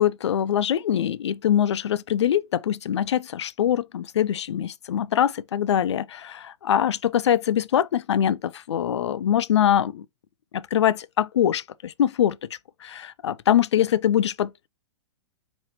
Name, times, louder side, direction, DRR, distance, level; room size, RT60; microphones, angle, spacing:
voice 1, 0.0-10.0 10.5-12.4 12.8-14.7, left 10 dB, 80° left, 0.4 m, -23 dB
4.7 x 3.1 x 2.8 m
hypercardioid pair, 120°, 15 cm